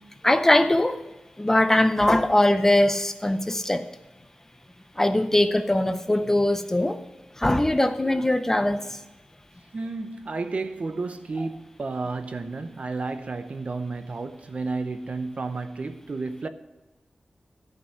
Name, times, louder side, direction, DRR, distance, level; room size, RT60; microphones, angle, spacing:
voice 1, 0.2-1.0 1.4-3.8 5.0-7.0 7.4-8.8, left 1 dB, 15° left, 0.6 m, -21 dB
voice 2, 9.7-16.5, right 3 dB, 50° right, 0.7 m, -32 dB
13.0 x 5.4 x 7.1 m
wide cardioid pair, 115°, 3 cm